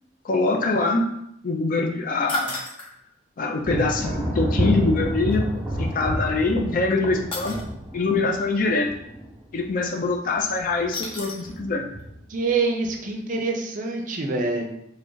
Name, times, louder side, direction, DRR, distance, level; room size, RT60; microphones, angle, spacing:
voice 1, 0.2-1.0 1.4-2.6 3.4-7.6 7.9-8.9 9.5-11.9, left 3 dB, 50° left, 3 dB, 0.5 m, -24 dB
sound 1, 2.3-2.9 5.3-5.4 7.3-7.6 10.9-11.6 12.0-12.1 12.5-12.6, left 2 dB, 30° left, 0.8 m, -31 dB
Thunder, 3.6-10.1 10.4-11.0 11.4-12.3, right 1 dB, 15° right, 0.8 m, -29 dB
voice 2, 12.3-14.6, right 3 dB, 45° right, 2 dB, 0.5 m, -25 dB
3.2 x 2.4 x 3.8 m, 0.76 s
head